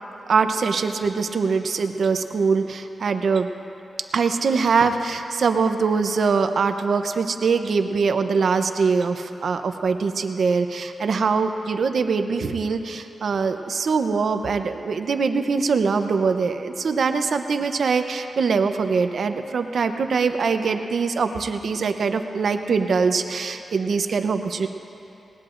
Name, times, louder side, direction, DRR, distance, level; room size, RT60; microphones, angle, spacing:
voice 1, 0.3-3.5 4.1-24.7, right 5 dB, 65° right, 7 dB, 0.7 m, -23 dB
19.5 x 19.0 x 2.6 m, 3.0 s
wide cardioid pair, 100°, 0 cm